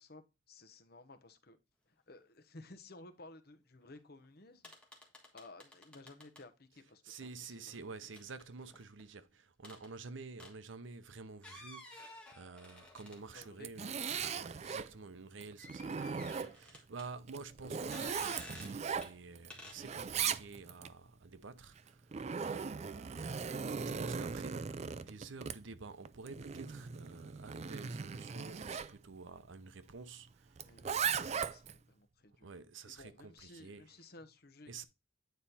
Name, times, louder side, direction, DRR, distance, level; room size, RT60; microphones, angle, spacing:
voice 1, 0.0-1.6 1.8-4.7 5.3-7.8 13.3-15.0 30.6-32.5 32.8-34.9, left 2 dB, 50° left, 1.0 m, -56 dB
sound 1, 4.0-4.1 4.2-4.3 4.6-6.4 7.7-9.0 9.6-9.9 10.4-10.6 11.3-13.5 13.9-14.0 15.6-17.1 17.9-18.8 19.0-19.1 19.5-19.8, left 2 dB, 5° left, 1.5 m, -53 dB
voice 2, 6.7-23.5 23.8-30.7 32.4-34.1 34.7-34.9, right 4 dB, 70° right, 0.7 m, -50 dB
Zipper (clothing), 13.3-14.9 15.4-16.8 17.3-19.5 19.8-20.9 21.8-28.9 30.6-31.8, right 6 dB, 35° right, 0.3 m, -38 dB
9.2 x 4.2 x 4.1 m
head